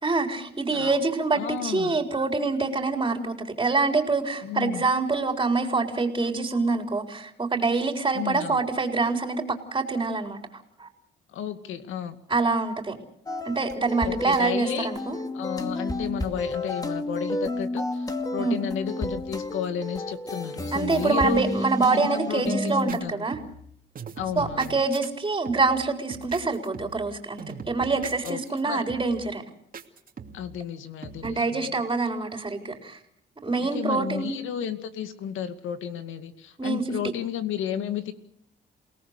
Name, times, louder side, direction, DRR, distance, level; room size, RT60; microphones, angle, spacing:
voice 1, 0.0-10.4 10.8-10.9 12.3-13.0 13.4-15.2 18.4-18.6 20.7-23.4 24.4-29.4 31.2-33.0 33.4-34.4 36.6-36.8, right 3 dB, 20° right, 3 dB, 4.2 m, -25 dB
voice 2, 1.4-2.0 4.4-4.9 8.1-8.6 11.3-12.2 14.0-14.9 15.3-21.4 21.9-23.3 24.2-24.8 28.2-28.9 30.3-31.7 33.7-38.1, left 9 dB, 85° left, 9 dB, 2.2 m, -33 dB
sound 1, 13.3-22.9, left 2 dB, 20° left, 2.4 m, -31 dB
sound 2, 22.7-23.0 23.3-23.7 23.9-25.1 25.4-25.8 26.1-27.1 27.4-28.6 28.9-29.3 29.7-30.5 31.0-31.3, right 5 dB, 45° right, 2.7 m, -41 dB
29.0 x 18.5 x 6.7 m, 0.68 s
cardioid pair, 90°, 20 cm